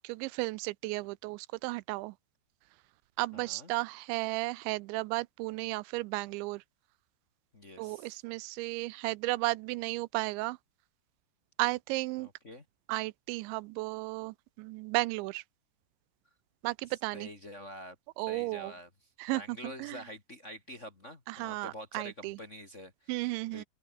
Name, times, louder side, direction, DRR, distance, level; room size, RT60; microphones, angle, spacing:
voice 1, 0.0-2.1 3.2-6.6 7.8-10.6 11.6-12.3 12.9-15.4 16.6-17.3 18.2-18.7 19.2-20.0 21.3-22.4 23.1-23.6, right 22 dB, 85° right, 2.9 m, -34 dB
voice 2, 3.3-3.7 7.5-8.2 12.2-12.6 16.9-17.9 18.3-18.9 19.3-23.6, equal, 40° left, 1.0 m, -47 dB
open air
omnidirectional pair, 5.3 m